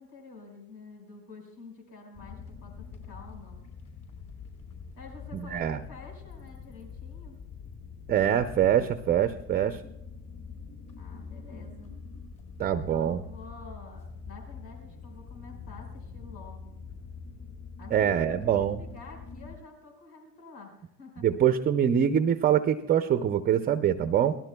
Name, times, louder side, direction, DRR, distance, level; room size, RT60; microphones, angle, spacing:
voice 1, 0.0-3.7 4.9-7.4 11.0-12.0 12.9-16.8 17.8-21.4, left 3 dB, 75° left, 1 dB, 5.2 m, -49 dB
sound 1, 2.1-19.6, left 5 dB, 40° left, 5.7 m, -44 dB
voice 2, 5.5-5.8 8.1-9.8 12.6-13.2 17.9-18.8 21.2-24.4, right 9 dB, 20° right, 10 dB, 0.5 m, -24 dB
25.0 x 18.5 x 2.3 m, 0.89 s
supercardioid pair, 105°, 47 cm